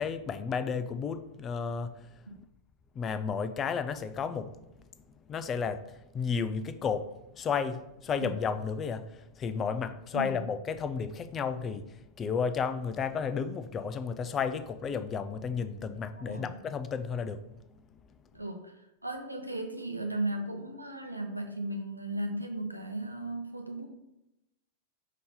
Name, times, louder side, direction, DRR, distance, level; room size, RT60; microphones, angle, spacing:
voice 1, 0.0-2.2 2.9-4.5 5.0-17.4 17.7-17.8, left 6 dB, 25° left, 0.3 m, -33 dB
voice 2, 10.1-10.4 16.2-16.5 18.3-23.9, right 1 dB, 90° right, 0.6 m, -36 dB
5.2 x 2.8 x 3.7 m
figure-of-eight pair, 90°, 0 cm